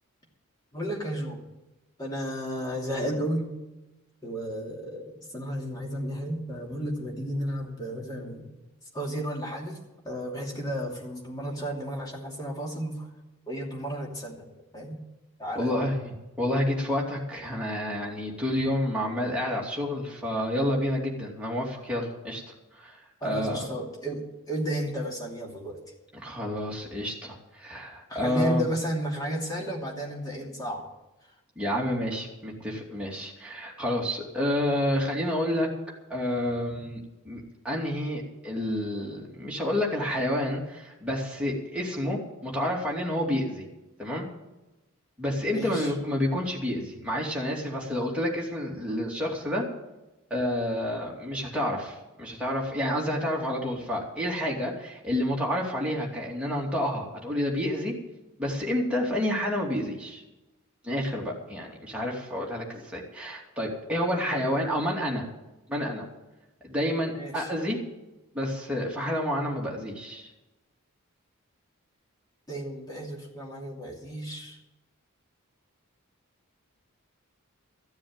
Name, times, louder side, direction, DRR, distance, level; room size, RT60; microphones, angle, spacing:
voice 1, 0.7-1.4 2.0-3.5 4.2-8.5 8.9-9.8 10.0-13.1 13.5-15.0 15.4-15.8 23.2-24.2 24.5-25.8 28.1-30.9 45.5-45.9 67.2-67.5 72.5-74.6, equal, 15° left, -2 dB, 2.7 m, -33 dB
voice 2, 15.5-23.7 26.1-28.7 31.6-35.7 36.1-43.7 44.0-44.3 45.2-49.7 50.3-57.9 58.4-60.2 60.8-65.3 65.7-66.1 66.6-67.8 68.3-70.3, left 1 dB, 5° right, -4 dB, 2.7 m, -29 dB
15.0 x 7.5 x 9.0 m, 1.0 s
head